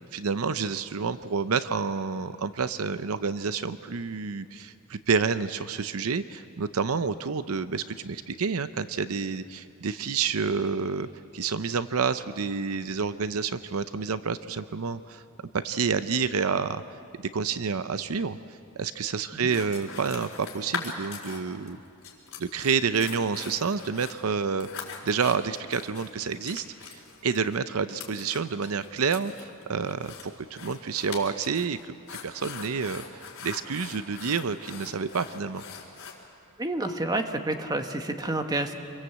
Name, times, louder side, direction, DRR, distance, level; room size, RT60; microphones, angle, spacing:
voice 1, 0.0-11.1 11.3-15.2 15.6-16.8 17.2-18.4 18.8-21.8 22.4-24.7 25.0-32.0 32.2-35.6, right 5 dB, 75° right, 12 dB, 0.6 m, -29 dB
sound 1, 19.5-21.7 22.0-36.1, left 6 dB, 65° left, 4.4 m, -41 dB
voice 2, 36.6-38.7, right 2 dB, 20° right, 6 dB, 1.3 m, -29 dB
27.0 x 23.0 x 8.0 m, 2.5 s
head